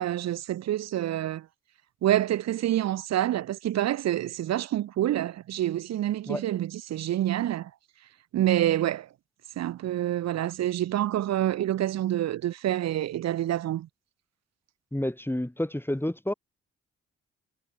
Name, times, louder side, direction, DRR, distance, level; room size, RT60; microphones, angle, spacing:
voice 1, 0.0-1.5 2.0-7.7 8.3-9.1 9.6-13.9, right 12 dB, 60° right, 0.8 m, -27 dB
voice 2, 14.9-16.3, left 1 dB, 5° left, 4.4 m, -29 dB
hypercardioid pair, 40°, 29 cm